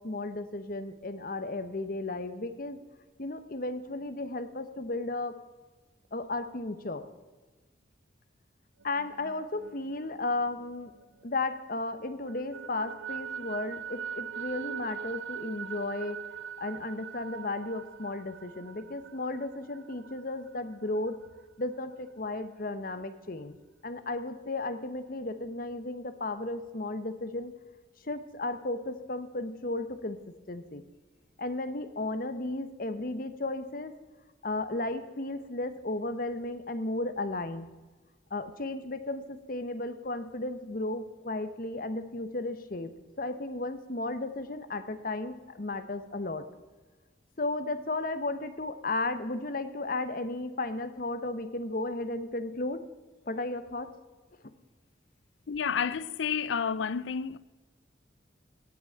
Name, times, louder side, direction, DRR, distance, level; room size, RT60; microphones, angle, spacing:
voice 1, 0.0-2.8 3.2-5.3 6.1-7.1 8.8-10.9 11.2-16.2 16.6-21.2 21.6-23.6 23.8-27.5 28.0-30.2 30.5-30.8 31.4-33.9 34.4-37.7 38.3-42.9 43.2-46.4 47.4-52.8 53.3-53.9, left 2 dB, 50° left, 0.9 m, -34 dB
sound 1, 8.8-11.6 12.0-21.4, right 8 dB, 80° right, 0.5 m, -42 dB
voice 2, 55.5-57.4, left 6 dB, 85° left, 0.5 m, -30 dB
17.5 x 6.1 x 8.5 m
head